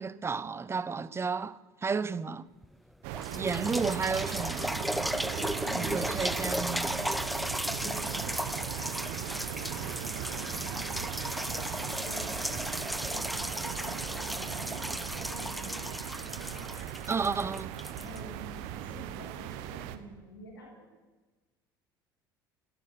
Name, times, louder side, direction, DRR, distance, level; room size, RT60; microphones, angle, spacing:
voice 1, 0.0-2.5 3.3-4.8 5.7-6.9 17.1-17.7, right 5 dB, 20° right, 1.1 m, -32 dB
sound 1, 2.6-2.7 3.1-18.9 19.5-19.6, equal, ahead, 0.7 m, -35 dB
sound 2, 3.0-20.0, right 12 dB, 60° right, 1.5 m, -39 dB
voice 2, 5.6-6.7 7.5-11.7 12.0-16.9 17.3-21.0, right 1 dB, 75° left, 7.7 m, -49 dB
29.5 x 13.0 x 8.9 m
figure-of-eight pair, 65°, 12 cm